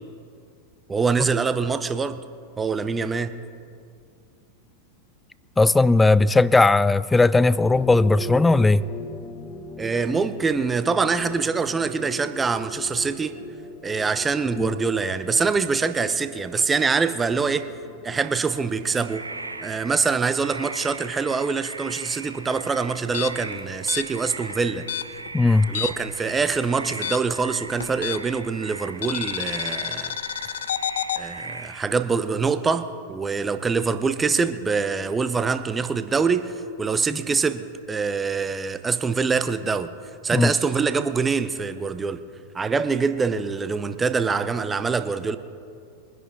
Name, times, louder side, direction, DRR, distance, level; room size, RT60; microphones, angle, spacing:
voice 1, 0.9-2.2 2.6-3.3 9.8-13.3 13.8-17.7 18.0-19.2 19.6-24.8 25.7-30.2 31.2-39.9 40.2-42.2 42.5-45.4, right 5 dB, 15° right, 0.7 m, -24 dB
voice 2, 5.6-8.8 14.6-14.7 25.3-25.7 37.1-37.2 40.3-40.5, left 3 dB, 10° left, 0.3 m, -17 dB
sound 1, 7.6-20.7, left 2 dB, 30° left, 1.0 m, -40 dB
sound 2, 18.5-31.9, right 3 dB, 80° right, 0.6 m, -39 dB
sound 3, 23.0-26.2 26.4-28.5 29.0-31.2, left 10 dB, 60° left, 0.5 m, -30 dB
23.0 x 10.5 x 3.6 m
figure-of-eight pair, 90°, 0 cm